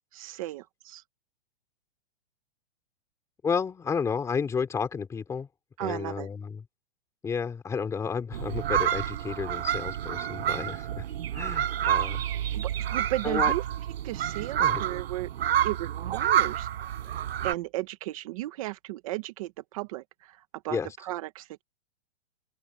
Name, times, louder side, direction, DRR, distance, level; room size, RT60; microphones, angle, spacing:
voice 1, 0.1-1.0 5.8-6.3 11.3-11.5 12.5-13.6 14.0-15.3 15.6-16.7 17.4-21.6, right 17 dB, 30° right, 1.0 m, -35 dB
voice 2, 3.4-5.5 5.8-6.6 7.2-11.0 11.3-12.2 13.2-13.5 14.6-15.0 20.7-20.9, left 6 dB, 10° left, 3.3 m, -32 dB
sound 1, 8.3-17.5, right 10 dB, 65° right, 4.5 m, -28 dB
open air
hypercardioid pair, 170°, 34 cm